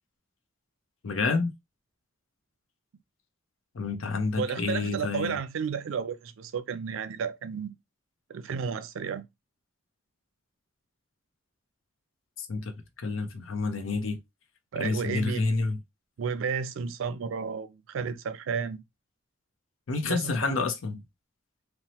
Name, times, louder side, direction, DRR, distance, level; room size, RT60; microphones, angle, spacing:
voice 1, 1.0-1.5 3.7-5.4 12.4-12.7 13.0-14.2 14.7-15.8 19.9-21.0, left 3 dB, 90° left, 0.6 m, -29 dB
voice 2, 4.4-7.8 8.3-9.2 14.7-15.4 16.2-18.8 20.1-20.7, right 6 dB, 90° right, 0.4 m, -32 dB
2.9 x 2.0 x 2.7 m
head